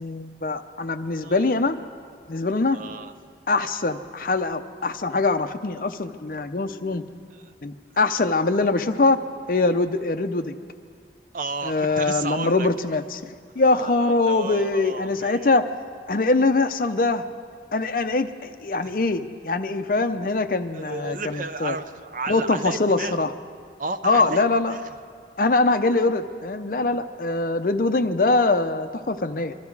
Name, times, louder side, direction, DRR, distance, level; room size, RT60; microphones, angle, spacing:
voice 1, 0.0-1.8 2.3-2.8 3.5-7.0 7.6-9.2 9.5-10.6 11.6-13.3 13.6-15.7 16.1-17.2 17.7-21.7 22.3-23.3 24.0-24.7 25.4-29.5, left 3 dB, 50° left, 9 dB, 0.6 m, -23 dB
voice 2, 2.7-3.1 7.3-7.5 11.3-12.7 13.6-15.6 18.8-19.0 20.7-23.3 23.8-24.8, right 3 dB, 50° right, 10 dB, 0.6 m, -33 dB
24.0 x 13.0 x 4.7 m, 2.1 s
head